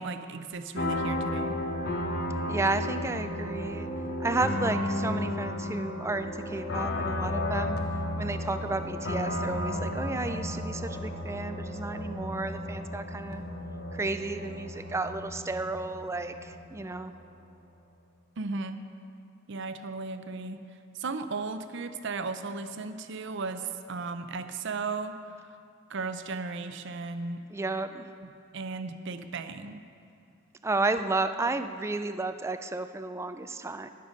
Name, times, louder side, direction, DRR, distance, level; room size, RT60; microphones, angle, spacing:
voice 1, 0.0-1.6 18.4-18.8 19.5-20.6 21.0-25.2 25.9-27.4 28.5-29.8, right 4 dB, 60° right, 9 dB, 0.6 m, -35 dB
sound 1, 0.7-17.3, left 1 dB, 55° left, 1.1 m, -33 dB
voice 2, 2.5-3.9 4.2-7.8 8.2-13.4 13.9-17.1 27.5-28.1 30.6-33.9, right 3 dB, 15° right, 9 dB, 0.4 m, -32 dB
19.0 x 6.7 x 5.2 m, 2.4 s
head